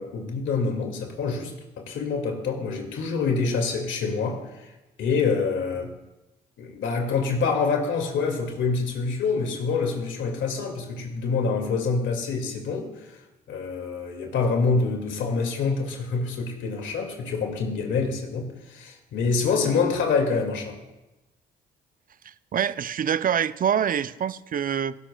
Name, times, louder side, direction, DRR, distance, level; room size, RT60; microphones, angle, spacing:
voice 1, 0.0-4.7 5.0-5.9 6.6-12.9 13.5-20.8, left 4 dB, 70° left, 3 dB, 2.2 m, -26 dB
voice 2, 22.2-25.0, right 8 dB, 45° right, 16 dB, 0.5 m, -25 dB
18.0 x 11.5 x 2.3 m, 1.0 s
supercardioid pair, 60°, 21 cm